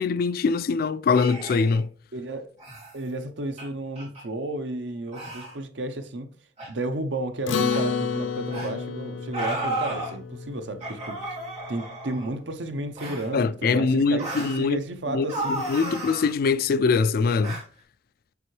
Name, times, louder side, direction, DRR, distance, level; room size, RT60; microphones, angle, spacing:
voice 1, 0.0-1.9 13.3-14.8 15.1-17.6, left 4 dB, 55° left, 0.3 m, -23 dB
sound 1, 1.1-1.8 2.6-2.9 3.6-3.7 3.9-4.2 5.1-5.5 6.6-6.7 7.7-7.8 8.5-8.7 9.3-10.1 10.8-12.3 13.0-13.3 14.2-14.6 15.3-16.3 17.4-17.6, right 1 dB, 40° right, 3.3 m, -33 dB
voice 2, 2.1-2.5 2.9-6.3 6.7-11.4 11.7-15.6, right 2 dB, 75° right, 0.8 m, -32 dB
Acoustic guitar, 7.5-12.2, left 6 dB, 90° left, 0.6 m, -31 dB
6.9 x 4.4 x 3.2 m
head